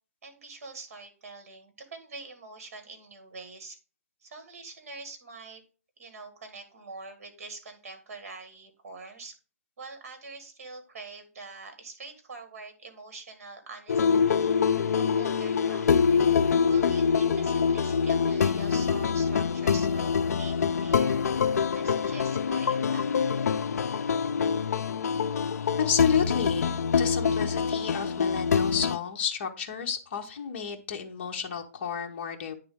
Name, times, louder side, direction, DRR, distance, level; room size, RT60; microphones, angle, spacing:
voice 1, 0.2-3.8 4.2-5.6 6.0-9.4 9.8-14.6 15.1-15.9 16.7-21.3 21.7-23.5, right 3 dB, 55° right, 6 dB, 1.7 m, -45 dB
sound 1, 13.9-29.0, left 6 dB, 75° left, 0.4 m, -25 dB
voice 2, 25.8-32.5, left 7 dB, 40° left, 4 dB, 0.9 m, -31 dB
9.3 x 3.4 x 3.6 m, 0.36 s
hypercardioid pair, 165°, 9 cm